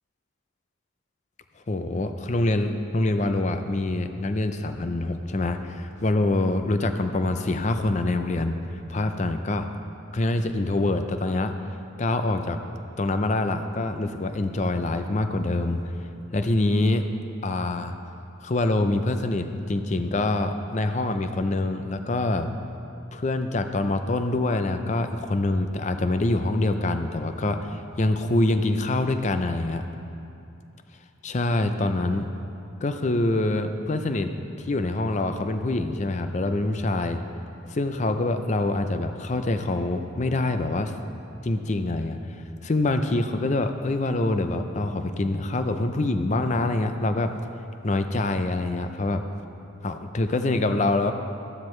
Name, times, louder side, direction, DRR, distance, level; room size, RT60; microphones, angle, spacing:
voice 1, 1.7-8.6 8.9-9.7 10.1-11.5 12.0-12.6 13.0-15.8 16.3-17.0 17.4-18.0 18.4-22.5 23.1-29.8 31.2-32.3 32.8-34.3 34.6-37.2 37.7-40.9 41.4-42.2 42.6-47.3 47.8-49.2 49.8-51.1, left 2 dB, 35° left, 8 dB, 0.5 m, -25 dB
12.5 x 12.0 x 3.2 m, 2.7 s
head